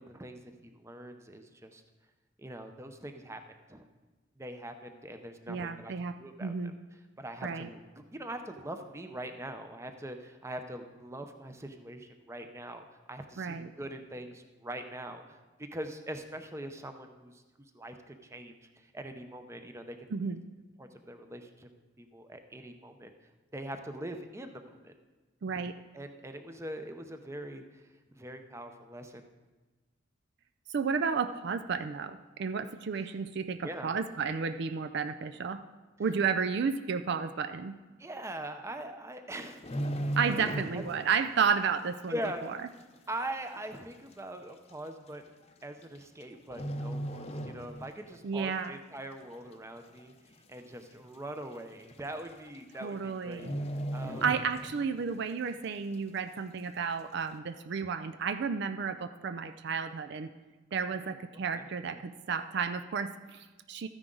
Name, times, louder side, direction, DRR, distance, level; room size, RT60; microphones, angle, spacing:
voice 1, 0.0-1.8 2.4-3.4 3.7-3.9 4.4-5.9 6.2-6.7 7.2-17.4 17.7-20.3 20.8-21.7 22.0-23.1 23.5-24.9 25.9-27.8 28.2-29.3 33.0-33.2 33.6-34.0 38.0-39.6 40.7-41.0 42.1-42.7 43.1-45.2 45.6-50.1 50.5-53.5 53.9-54.2 61.0-61.6 61.9-62.0, right 1 dB, 15° right, 7 dB, 0.7 m, -42 dB
voice 2, 5.5-6.2 6.4-6.7 7.4-7.7 13.4-13.7 20.1-20.4 25.4-25.8 30.7-35.6 36.0-37.7 40.2-42.1 48.2-48.8 52.8-53.5 54.2-60.3 60.7-63.9, right 6 dB, 55° right, 9 dB, 0.4 m, -32 dB
sound 1, 39.4-41.1 41.4-41.7 42.2-42.3 43.2-43.3 43.6-43.7 44.5-44.7 45.8-46.2 46.5-48.1 48.4-48.6 49.1-49.6 50.0-50.1 50.3-50.4 50.8-50.9 51.9-52.0 52.3-52.6 52.8-53.0 53.3-55.0 55.3-55.4, right 1 dB, 30° left, 0.7 m, -36 dB
13.5 x 9.9 x 3.9 m, 1.2 s
head